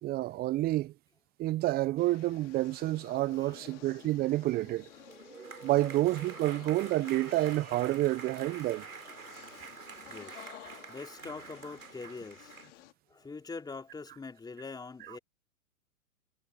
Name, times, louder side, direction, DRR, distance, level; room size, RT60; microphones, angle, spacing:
voice 1, 0.0-0.9 1.4-4.9 5.6-8.8, right 16 dB, 20° right, 0.9 m, -29 dB
sound 1, 2.0-12.9, left 14 dB, 55° left, 5.5 m, -54 dB
voice 2, 3.4-4.0 4.9-5.2 5.8-6.1 6.7-6.9 9.0-9.7 10.0-10.5 10.9-12.5 13.1-15.2, left 4 dB, 10° left, 3.9 m, -45 dB
sound 2, 4.8-12.7, right 5 dB, 80° right, 7.2 m, -47 dB
hypercardioid pair, 115°, 43 cm